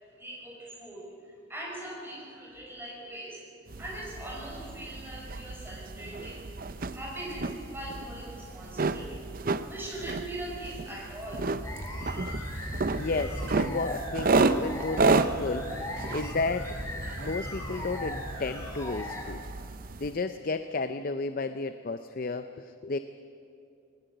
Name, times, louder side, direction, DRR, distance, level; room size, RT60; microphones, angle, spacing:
voice 1, 0.2-3.4 3.8-6.4 6.9-9.2 9.7-11.5 12.0-12.1, right 1 dB, 10° right, -3 dB, 5.8 m, -41 dB
sound 1, 3.7-20.2, right 3 dB, 45° right, 0.6 m, -32 dB
sound 2, 11.6-19.2, equal, 15° left, 3.6 m, -37 dB
voice 2, 12.6-16.8 17.2-19.4 20.0-23.0, left 3 dB, 45° left, 10 dB, 0.6 m, -33 dB
20.0 x 19.0 x 7.9 m, 2.6 s
head